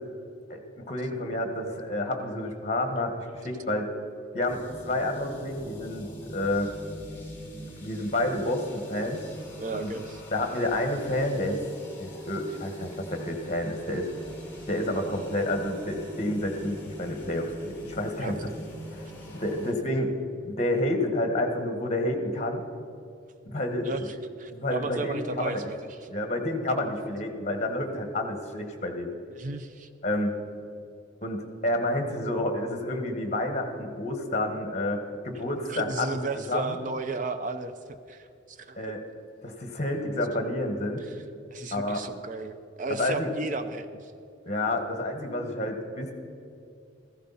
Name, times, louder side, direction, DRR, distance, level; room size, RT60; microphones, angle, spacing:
voice 1, 0.5-3.9 4.3-6.7 7.8-9.2 9.7-9.9 10.3-11.6 12.0-14.1 14.7-18.5 18.9-19.1 19.3-20.1 20.4-22.6 23.4-24.0 24.5-25.6 26.1-29.1 30.0-30.3 31.2-36.2 36.5-36.7 38.8-39.0 39.4-41.1 41.7-42.0 43.0-43.3 44.4-46.1, left 1 dB, 35° left, 5 dB, 1.6 m, -29 dB
sound 1, 4.4-19.7, equal, 10° left, 2.4 m, -44 dB
voice 2, 9.6-10.2 18.2-18.4 23.8-26.1 29.3-29.9 35.7-38.9 41.0-41.2 41.5-44.1, right 3 dB, 40° right, 9 dB, 0.6 m, -35 dB
15.5 x 15.0 x 4.2 m, 2.6 s
head